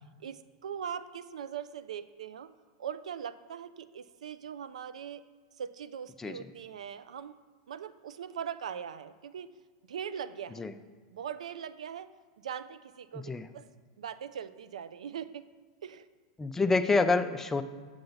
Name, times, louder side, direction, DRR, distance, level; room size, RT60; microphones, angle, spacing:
voice 1, 0.2-2.5 2.8-5.2 5.6-7.3 7.7-9.5 9.9-10.6 11.1-12.1 12.4-13.6 14.0-15.4 15.8-16.1, right 8 dB, 85° right, 14 dB, 0.3 m, -40 dB
voice 2, 13.1-13.5 16.4-17.6, left 3 dB, 10° left, 8 dB, 0.4 m, -27 dB
6.7 x 5.7 x 3.9 m, 1.5 s
hypercardioid pair, 120°, 4 cm